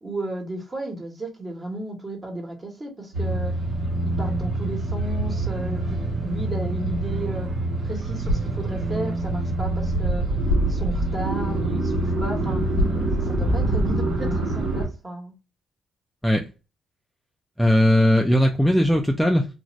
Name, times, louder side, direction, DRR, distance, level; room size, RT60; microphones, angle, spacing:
voice 1, 0.0-3.5 4.0-7.5 7.8-10.3 10.6-12.6 13.1-15.3, right 1 dB, 30° right, 1.2 m, -34 dB
sound 1, 3.1-14.9, right 2 dB, 75° right, 1.2 m, -25 dB
sound 2, 8.1-14.1, equal, 85° left, 0.9 m, -32 dB
voice 2, 17.6-19.5, left 1 dB, ahead, 0.4 m, -18 dB
2.5 x 2.5 x 3.1 m
cardioid pair, 90°, 0 cm